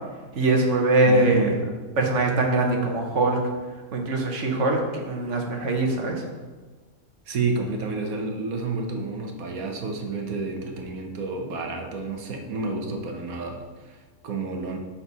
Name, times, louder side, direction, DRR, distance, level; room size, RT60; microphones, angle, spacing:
voice 1, 0.3-1.5 2.0-3.4 3.9-6.2, right 2 dB, 55° right, 2 dB, 1.4 m, -22 dB
voice 2, 1.1-1.6 7.3-14.8, right 3 dB, 75° right, 3 dB, 1.5 m, -30 dB
12.0 x 4.2 x 4.1 m, 1.4 s
omnidirectional pair, 1.5 m